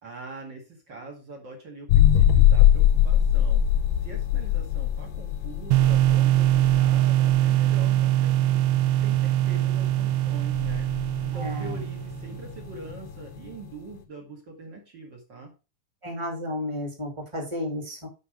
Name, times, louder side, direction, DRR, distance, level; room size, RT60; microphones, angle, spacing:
voice 1, 0.0-3.7 4.0-8.7 9.0-15.5, right 3 dB, 45° right, 1 dB, 1.5 m, -43 dB
sound 1, 1.9-13.6, left 11 dB, 75° left, 2.6 m, -23 dB
sound 2, 5.7-12.5, right 14 dB, 80° right, 2.5 m, -22 dB
voice 2, 11.3-11.8 16.0-18.1, left 1 dB, 10° right, 0 dB, 1.4 m, -32 dB
8.5 x 5.4 x 4.7 m, 0.30 s
omnidirectional pair, 4.9 m